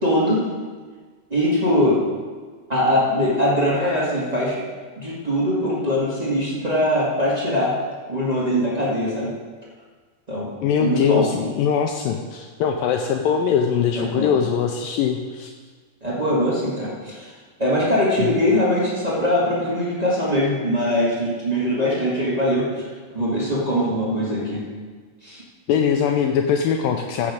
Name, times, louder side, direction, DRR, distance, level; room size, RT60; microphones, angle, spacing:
voice 1, 0.0-0.5 1.3-2.0 2.7-4.6 5.0-7.7 8.1-9.3 10.3-10.5 10.8-11.3 14.0-14.3 16.0-17.3 17.6-22.8 23.1-24.6 25.2-25.4, equal, 35° right, -8 dB, 0.6 m, -21 dB
voice 2, 10.6-15.5 18.2-18.3 25.7-27.3, left 7 dB, 90° left, 4 dB, 2.0 m, -21 dB
14.5 x 6.3 x 5.0 m, 1.5 s
omnidirectional pair, 4.6 m